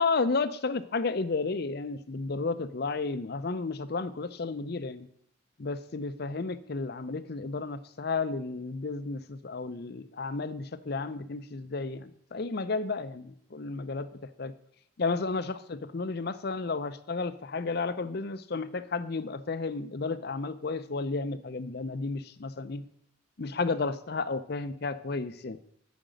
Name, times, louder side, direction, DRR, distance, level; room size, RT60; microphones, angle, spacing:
voice 1, 0.0-5.1 5.6-14.1 14.4-14.5 15.0-22.8 23.4-25.6, left 3 dB, 55° left, 14 dB, 0.6 m, -32 dB
8.9 x 5.1 x 7.8 m, 0.66 s
head